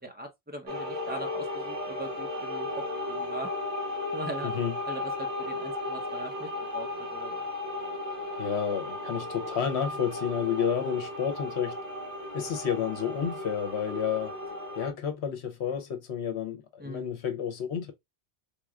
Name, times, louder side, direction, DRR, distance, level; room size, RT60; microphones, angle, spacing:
voice 1, 0.0-3.5 4.1-4.5 4.9-7.4 16.8-17.2, right 1 dB, 10° right, 0.7 m, -41 dB
sound 1, 0.7-14.9, left 2 dB, 40° right, 0.9 m, -35 dB
voice 2, 4.4-4.7 8.4-11.7 12.3-14.3 14.8-17.9, left 8 dB, 70° left, 1.1 m, -30 dB
3.7 x 3.0 x 2.3 m
omnidirectional pair, 1.2 m